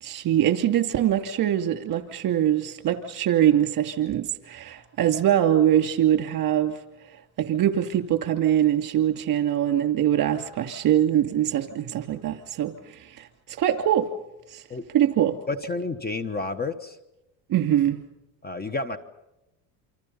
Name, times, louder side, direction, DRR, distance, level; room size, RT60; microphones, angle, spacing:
voice 1, 0.0-6.8 7.4-13.3 13.6-14.1 14.5-14.6 14.9-15.4 17.5-18.0, right 11 dB, 50° right, 8 dB, 2.8 m, -23 dB
voice 2, 15.5-17.0 18.4-19.0, left 3 dB, 20° left, 12 dB, 1.3 m, -30 dB
28.0 x 26.0 x 5.6 m, 0.93 s
cardioid pair, 120°, 43 cm